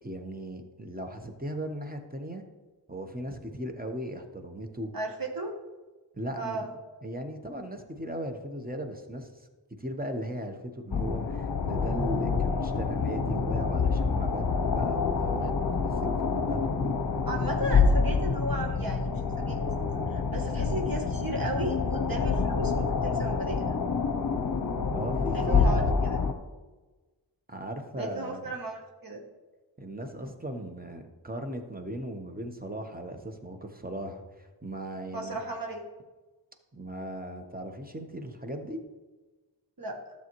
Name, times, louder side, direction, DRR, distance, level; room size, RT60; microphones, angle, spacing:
voice 1, 0.0-2.4 2.9-4.9 6.1-6.6 7.0-9.3 9.8-17.0 24.9-26.0 27.5-28.4 29.8-35.4 36.7-38.8, right 1 dB, 20° right, 4 dB, 1.0 m, -37 dB
voice 2, 4.9-5.5 6.3-6.7 17.3-19.6 20.1-23.7 25.3-26.2 28.0-29.2 35.1-35.8 39.8-40.0, right 1 dB, 50° right, 1 dB, 1.3 m, -35 dB
sound 1, 10.9-26.3, left 5 dB, 55° left, 0.8 m, -27 dB
12.5 x 7.0 x 3.1 m, 1.2 s
wide cardioid pair, 50°, 43 cm